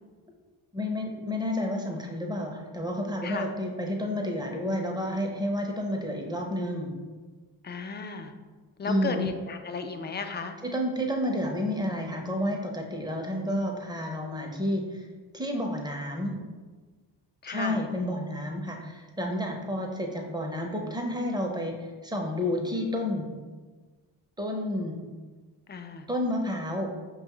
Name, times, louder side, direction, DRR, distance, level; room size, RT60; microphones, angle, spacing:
voice 1, 0.7-7.0 8.8-9.3 10.6-15.0 15.3-16.4 17.5-23.3 24.4-24.9 26.1-26.9, left 1 dB, 10° right, 2 dB, 0.7 m, -30 dB
voice 2, 7.6-8.3 8.8-10.6 17.4-17.8 25.7-26.0, left 4 dB, 25° left, 7 dB, 0.4 m, -34 dB
5.1 x 2.3 x 3.0 m, 1.4 s
supercardioid pair, 45°, 47 cm